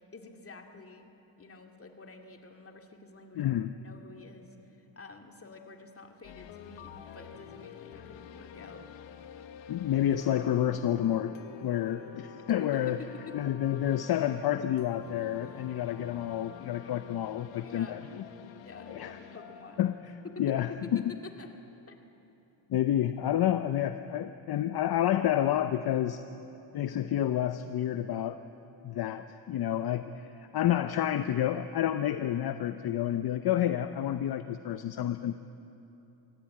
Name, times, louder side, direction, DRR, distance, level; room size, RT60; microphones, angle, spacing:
voice 1, 0.1-1.1 1.4-8.9 12.6-13.3 17.6-18.0 18.5-19.8 20.2-21.5 21.9-22.0, left 4 dB, 30° left, 4 dB, 2.2 m, -47 dB
voice 2, 3.3-3.7 7.9-8.0 9.7-11.4 11.6-13.0 13.3-18.0 18.9-19.2 19.8-20.1 20.4-21.0 22.7-26.2 26.7-28.4 28.8-35.4, left 11 dB, 55° left, 10 dB, 0.8 m, -29 dB
sound 1, 6.2-21.1, left 8 dB, 75° left, 1.3 m, -48 dB
24.0 x 17.0 x 8.6 m, 3.0 s
cardioid pair, 95°, 45 cm